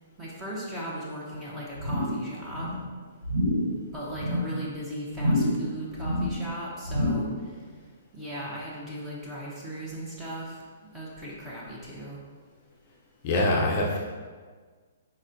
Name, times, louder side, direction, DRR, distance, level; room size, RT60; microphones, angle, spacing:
voice 1, 0.2-2.7 3.9-7.3 8.1-10.6 10.9-12.2, equal, 10° right, -5 dB, 0.8 m, -37 dB
sound 1, 1.7-2.2 2.5-2.9 3.2-3.7 4.1-4.5 5.1-5.7 5.9-6.4 6.8-7.4 7.7-7.8, left 1 dB, 90° right, 1.1 m, -27 dB
voice 2, 13.2-14.0, left 1 dB, 35° left, -2 dB, 0.5 m, -24 dB
4.2 x 4.1 x 2.6 m, 1.5 s
hypercardioid pair, 165°, 0 cm